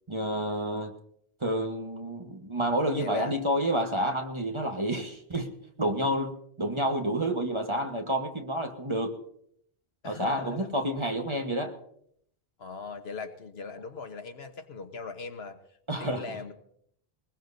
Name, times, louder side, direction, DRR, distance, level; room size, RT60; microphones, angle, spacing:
voice 1, 0.1-0.9 1.4-9.2 10.0-11.8 15.9-16.2, right 1 dB, 30° right, 1.3 m, -29 dB
voice 2, 3.0-3.3 10.0-10.7 12.6-15.6 16.0-16.5, left 4 dB, 75° left, 1.4 m, -39 dB
21.5 x 20.5 x 2.7 m
omnidirectional pair, 1.1 m